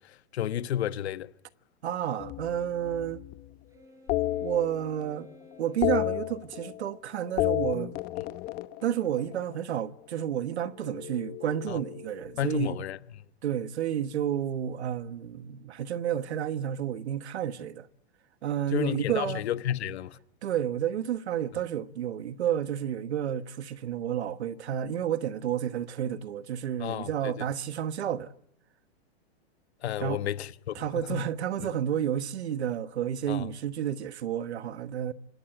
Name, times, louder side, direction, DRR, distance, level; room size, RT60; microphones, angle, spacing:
voice 1, 0.3-1.3 11.7-11.8 12.4-13.0 18.7-20.2 26.8-27.3 29.8-30.8 31.1-31.2 31.6-31.7 33.3-33.5, left 11 dB, 80° left, 1.3 m, -31 dB
voice 2, 1.8-3.2 4.4-5.3 5.6-8.0 8.8-12.8 13.4-17.9 18.4-19.4 20.4-28.3 30.0-30.2 30.7-35.1, right 10 dB, 90° right, 1.4 m, -31 dB
sound 1, 2.2-3.5 4.1-5.2 5.5-7.0 7.2-9.6 10.8-12.5, left 16 dB, 30° left, 0.9 m, -32 dB
Wind instrument woodwind instrument, 3.7-6.6, left 1 dB, 10° right, 4.5 m, -54 dB
27.0 x 19.5 x 9.0 m
supercardioid pair, 150°, 32 cm